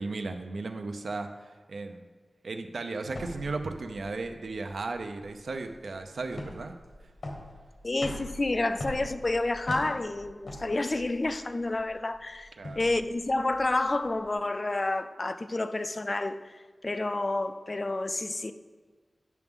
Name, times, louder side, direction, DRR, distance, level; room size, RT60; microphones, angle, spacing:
voice 1, 0.0-2.0 2.4-6.7 12.6-12.9, right 3 dB, 90° right, 0.5 m, -35 dB
sound 1, 3.1-14.3, left 1 dB, 75° left, 1.3 m, -43 dB
voice 2, 7.8-12.5 12.8-16.4 16.8-18.5, left 2 dB, 40° left, 0.4 m, -29 dB
9.4 x 5.9 x 3.7 m
wide cardioid pair, 85°, 0 cm